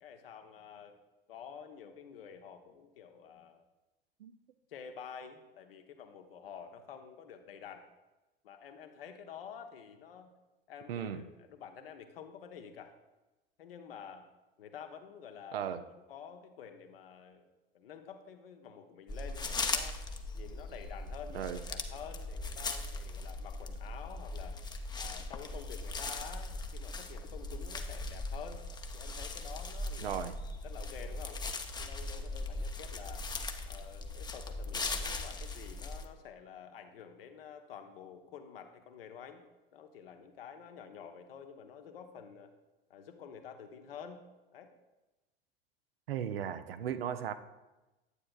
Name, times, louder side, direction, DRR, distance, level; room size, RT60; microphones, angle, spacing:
voice 1, 0.0-1.0 1.3-3.6 4.7-7.8 8.4-10.3 10.7-12.9 13.6-14.3 14.6-17.4 17.7-20.0 20.3-24.6 25.0-28.6 28.9-30.3 30.6-31.4 31.8-33.3 33.7-39.4 39.7-42.5 42.9-44.2 44.5-44.7, left 7 dB, 75° left, 6 dB, 0.9 m, -49 dB
voice 2, 10.9-11.2 15.5-15.8 21.3-21.6 30.0-30.3 46.1-47.3, right 9 dB, 75° right, 12 dB, 0.6 m, -36 dB
sound 1, 19.1-36.1, left 3 dB, 15° left, 0.6 m, -39 dB
9.8 x 8.5 x 2.3 m, 1.1 s
figure-of-eight pair, 75°, 30 cm